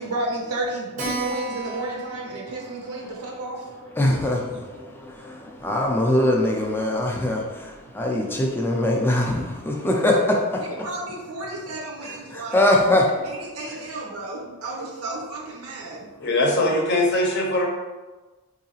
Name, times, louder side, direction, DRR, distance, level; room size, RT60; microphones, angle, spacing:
voice 1, 0.0-3.7 4.5-4.6 10.6-12.7 13.2-16.1, right 2 dB, 80° right, -1 dB, 0.8 m, -32 dB
Keyboard (musical), 1.0-6.0 6.3-6.4 6.7-6.8 7.0-7.1 7.7-8.1, right 3 dB, 35° right, 0.6 m, -37 dB
voice 2, 4.0-10.9 12.0-13.1, left 1 dB, 10° left, -1 dB, 0.4 m, -22 dB
voice 3, 16.2-17.7, left 1 dB, 50° left, 0 dB, 0.7 m, -21 dB
3.7 x 2.7 x 2.8 m, 1.2 s
head